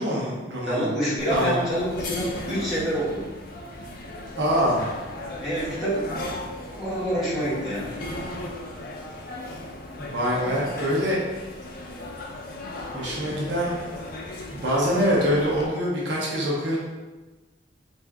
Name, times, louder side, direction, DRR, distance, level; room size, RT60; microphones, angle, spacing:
voice 1, 0.0-0.9 1.3-1.5 4.4-4.8 10.0-11.2 12.9-13.8 14.5-16.8, equal, 65° right, -5 dB, 0.8 m, -24 dB
voice 2, 0.6-3.3 5.4-6.0 6.7-7.9, right 1 dB, ahead, -12 dB, 1.4 m, -27 dB
sound 1, 1.2-15.7, left 2 dB, 50° left, 0.5 m, -37 dB
3.6 x 2.5 x 3.5 m, 1.2 s
head